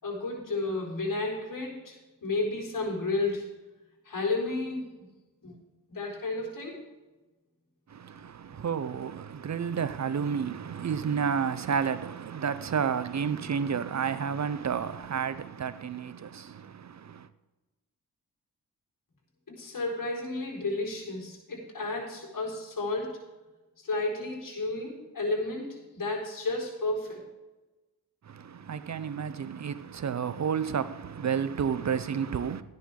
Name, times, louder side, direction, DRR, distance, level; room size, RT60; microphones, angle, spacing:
voice 1, 0.0-3.5 4.1-4.9 5.4-5.6 5.9-6.8 19.6-23.2 23.8-27.2, left 2 dB, 60° left, 4.4 m, -32 dB
voice 2, 7.9-17.3 28.2-32.6, right 7 dB, 50° right, 0.6 m, -31 dB
13.0 x 10.5 x 3.7 m
cardioid pair, 80°, 37 cm